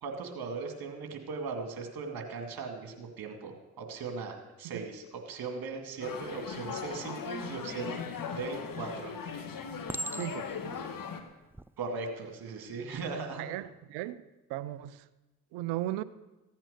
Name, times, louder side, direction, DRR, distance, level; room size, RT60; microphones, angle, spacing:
voice 1, 0.0-8.0 8.3-9.2 11.8-13.4, right 4 dB, 60° right, 4 dB, 2.4 m, -38 dB
sound 1, 6.0-11.2, left 6 dB, 55° left, 1.6 m, -39 dB
Chink clink, 8.4-8.9 9.9-10.7 11.4-11.7, right 1 dB, 5° right, 0.4 m, -39 dB
voice 2, 10.1-10.5 13.4-15.0 15.5-16.0, right 15 dB, 80° right, 16 dB, 0.6 m, -36 dB
15.5 x 8.9 x 6.6 m, 1.1 s
hypercardioid pair, 40°, 40 cm